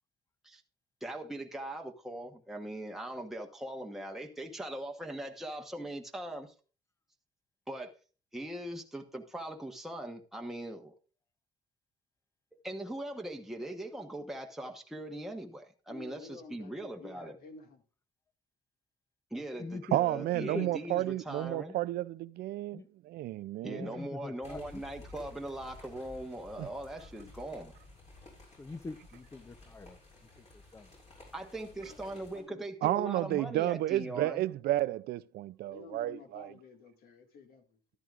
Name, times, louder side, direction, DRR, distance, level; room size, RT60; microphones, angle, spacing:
voice 1, 1.0-6.5 7.7-7.9 8.3-10.9 12.6-17.3 19.3-21.8 23.6-27.8 31.3-34.4, right 1 dB, ahead, 1.1 m, -40 dB
voice 2, 15.9-17.8 31.7-32.0 32.3-32.6 35.7-37.8, left 4 dB, 60° left, 2.1 m, -51 dB
voice 3, 19.3-20.0 20.4-20.7 22.7-22.9 23.6-24.8 28.6-30.0 30.4-30.9, left 3 dB, 15° left, 0.7 m, -43 dB
voice 4, 19.9-24.0 26.6-26.7 32.8-36.5, right 15 dB, 70° right, 0.4 m, -32 dB
sound 1, 24.4-32.4, left 2 dB, 40° left, 7.3 m, -54 dB
14.0 x 12.0 x 2.5 m
cardioid pair, 110°, 17 cm